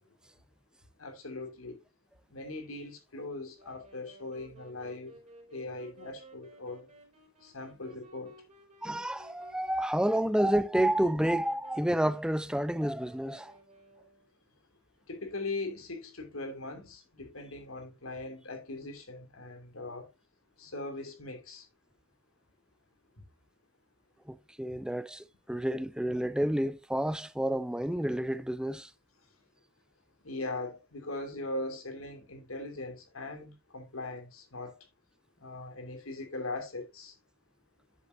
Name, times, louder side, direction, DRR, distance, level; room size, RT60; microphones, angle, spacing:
voice 1, 1.0-1.8 2.3-5.2 5.5-6.9 7.4-8.3 15.1-20.1 20.6-21.7 30.2-34.8 35.4-37.1, left 2 dB, 90° left, 2.7 m, -40 dB
Wind instrument woodwind instrument, 3.6-14.5, right 2 dB, 35° right, 4.3 m, -56 dB
voice 2, 8.8-13.5 24.3-28.9, right 1 dB, 5° right, 0.5 m, -29 dB
9.8 x 8.0 x 2.6 m
head